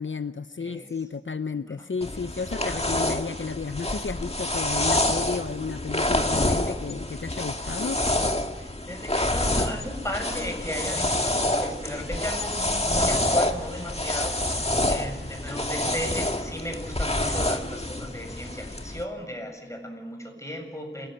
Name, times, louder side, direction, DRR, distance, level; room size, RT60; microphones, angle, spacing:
voice 1, 0.0-8.0, left 5 dB, 75° left, 11 dB, 0.8 m, -32 dB
sound 1, 2.0-19.0, left 1 dB, 30° left, 2.0 m, -27 dB
voice 2, 8.5-21.1, left 1 dB, 15° left, 3 dB, 7.6 m, -35 dB
27.5 x 19.5 x 9.3 m, 1.1 s
wide cardioid pair, 50°, 20 cm